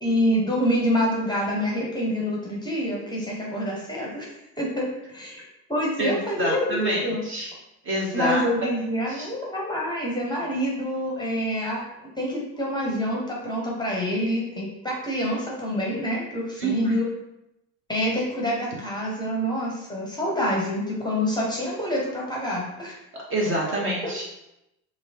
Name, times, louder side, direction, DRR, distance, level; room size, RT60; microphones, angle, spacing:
voice 1, 0.0-4.3 4.6-5.4 5.7-7.2 8.1-17.1 17.9-23.0 24.0-24.1, equal, 10° left, -3 dB, 0.8 m, -27 dB
voice 2, 6.0-7.5 7.8-8.4 9.1-9.3 16.6-16.9 23.1-24.2, right 1 dB, 25° right, -3 dB, 0.8 m, -27 dB
3.0 x 2.7 x 2.8 m, 0.87 s
figure-of-eight pair, 65°, 46 cm